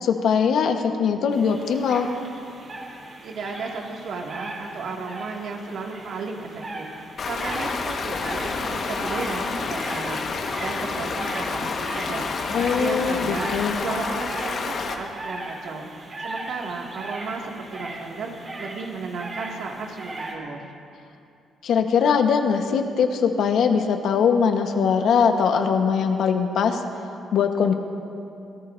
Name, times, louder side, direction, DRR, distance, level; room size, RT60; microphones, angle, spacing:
voice 1, 0.0-2.1 12.5-13.8 21.6-26.8 27.3-27.7, left 6 dB, 75° left, 5 dB, 1.3 m, -21 dB
sound 1, 1.3-20.3, right 2 dB, 45° right, 4.5 m, -38 dB
voice 2, 3.2-15.9 16.2-20.7, right 4 dB, 70° right, 0 dB, 2.3 m, -34 dB
Stream, 7.2-14.9, left 4 dB, 55° left, 1.5 m, -30 dB
sound 2, 7.4-13.7, left 2 dB, 35° left, 2.6 m, -36 dB
25.5 x 18.0 x 2.7 m, 2.6 s
cardioid pair, 90°, 0 cm